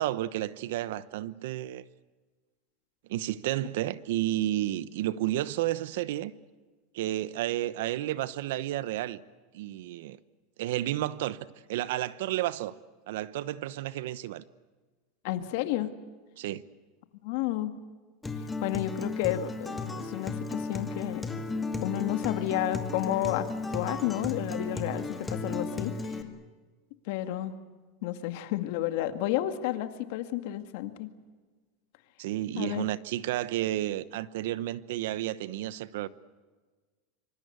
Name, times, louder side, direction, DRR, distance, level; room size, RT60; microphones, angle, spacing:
voice 1, 0.0-1.8 3.1-6.3 6.9-9.2 9.5-10.2 10.6-11.4 11.7-12.7 13.1-14.4 16.4-16.6 32.2-36.1, right 14 dB, 75° right, 1.0 m, -31 dB
voice 2, 15.2-15.9 17.2-17.7 18.6-21.3 21.8-23.5 23.7-26.1 27.1-27.5 28.0-31.1 32.6-32.9, left 13 dB, 65° left, 2.1 m, -31 dB
Acoustic guitar, 18.2-26.2, left 3 dB, 10° left, 2.2 m, -35 dB
25.0 x 25.0 x 8.1 m
supercardioid pair, 145°, 0 cm